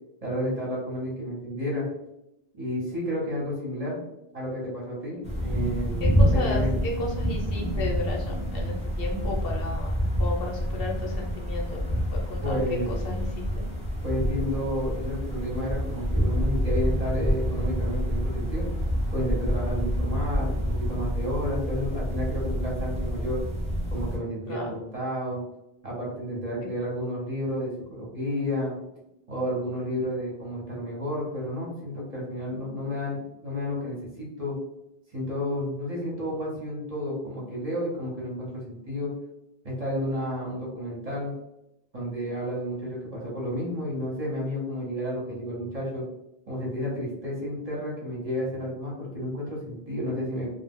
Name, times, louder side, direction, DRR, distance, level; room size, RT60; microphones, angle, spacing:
voice 1, 0.2-1.9 2.6-4.0 4.3-6.8 12.4-13.0 14.0-18.7 19.1-23.4 23.9-25.4 25.8-28.8 29.3-34.6 35.1-39.1 39.6-41.3 41.9-46.0 46.5-50.5, equal, 40° right, -5 dB, 0.8 m, -31 dB
sound 1, 5.2-24.2, equal, 10° right, 0.5 m, -27 dB
voice 2, 6.0-13.7 24.5-24.7, left 3 dB, 65° left, -1 dB, 0.8 m, -34 dB
2.2 x 2.0 x 3.4 m, 0.87 s
omnidirectional pair, 1.1 m